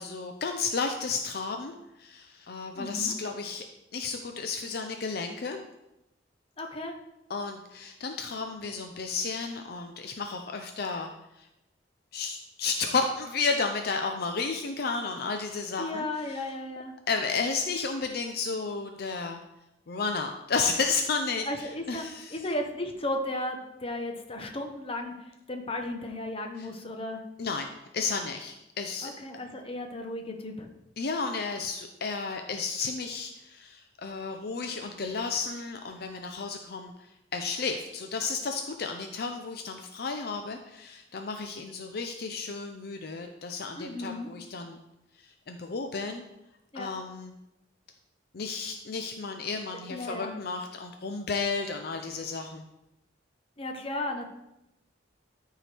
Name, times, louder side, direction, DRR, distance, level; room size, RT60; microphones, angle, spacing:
voice 1, 0.0-3.6 3.9-5.6 7.3-11.5 12.1-16.4 17.1-19.4 19.9-22.2 27.4-27.7 27.9-29.1 31.0-36.9 37.3-44.8 45.5-46.2 46.7-47.3 48.3-52.6, left 4 dB, 60° left, 5 dB, 0.6 m, -32 dB
voice 2, 2.7-3.2 6.6-6.9 15.8-16.9 21.5-22.0 22.3-27.2 29.0-30.7 43.8-44.3 46.7-46.9 49.9-50.3 53.6-54.3, left 1 dB, 30° left, 4 dB, 0.9 m, -35 dB
13.0 x 4.6 x 3.4 m, 0.90 s
head